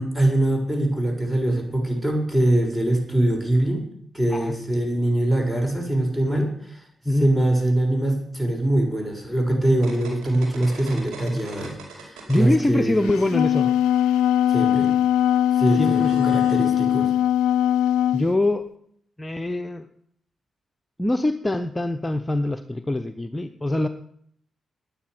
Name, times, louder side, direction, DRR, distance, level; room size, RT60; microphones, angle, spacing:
voice 1, 0.0-3.9 4.1-6.5 7.2-13.1 14.5-14.9 15.6-17.1, right 1 dB, 15° right, 2 dB, 6.7 m, -23 dB
sound 1, 9.6-12.6 12.9-16.7, right 4 dB, 75° right, 5.1 m, -44 dB
voice 2, 12.3-13.7 15.7-16.3 18.1-18.6 19.2-19.9 21.0-23.9, left 1 dB, 20° left, 8 dB, 1.0 m, -24 dB
Wind instrument woodwind instrument, 13.1-18.3, left 11 dB, 85° left, 0.4 m, -20 dB
10.0 x 9.9 x 9.7 m, 0.67 s
hypercardioid pair, 45°, 0 cm